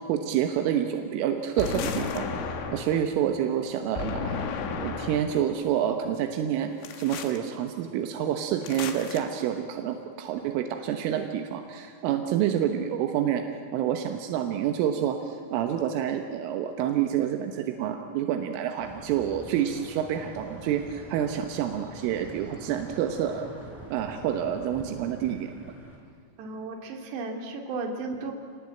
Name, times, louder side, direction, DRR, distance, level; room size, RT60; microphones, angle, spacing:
voice 1, 0.1-4.5 4.8-6.7 7.0-13.4 13.7-23.5 23.9-25.5, right 10 dB, 85° right, 6 dB, 3.7 m, -28 dB
sound 1, 1.6-3.1 4.0-5.4 6.8-7.4 8.6-9.2, left 5 dB, 75° left, 4.2 m, -33 dB
sound 2, 18.8-26.0, right 1 dB, 5° right, 4.2 m, -45 dB
voice 2, 26.4-28.3, right 3 dB, 65° right, 3 dB, 4.5 m, -34 dB
28.5 x 19.0 x 8.9 m, 2.5 s
omnidirectional pair, 5.7 m